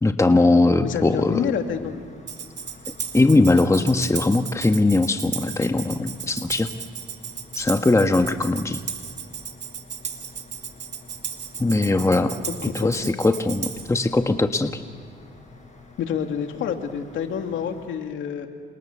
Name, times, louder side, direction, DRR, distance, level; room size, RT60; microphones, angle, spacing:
voice 1, 0.0-1.4 3.1-6.7 7.5-8.8 11.6-12.3 12.7-14.8, left 2 dB, 15° left, 6 dB, 1.4 m, -20 dB
voice 2, 0.8-2.0 13.0-13.2 16.0-18.5, left 7 dB, 80° left, 5 dB, 2.7 m, -28 dB
sound 1, 0.8-17.9, left 3 dB, 35° left, 7.8 m, -48 dB
Tambourine, 2.3-14.0, right 7 dB, 60° right, 2.4 m, -35 dB
29.5 x 28.0 x 6.9 m, 2.1 s
cardioid pair, 90°, 20 cm